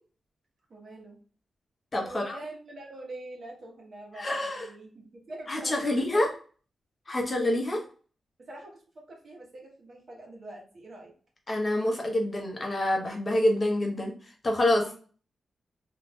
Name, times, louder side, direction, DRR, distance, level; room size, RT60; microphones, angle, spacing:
voice 1, 0.7-1.2 2.0-6.3 8.5-11.1 14.8-15.0, right 1 dB, 50° right, 0 dB, 1.0 m, -44 dB
voice 2, 1.9-2.4 4.2-4.7 5.5-6.3 7.1-7.8 11.5-14.1 14.4-14.9, left 1 dB, 30° left, 1 dB, 0.7 m, -27 dB
2.5 x 2.3 x 3.4 m, 0.41 s
wide cardioid pair, 140°, 0 cm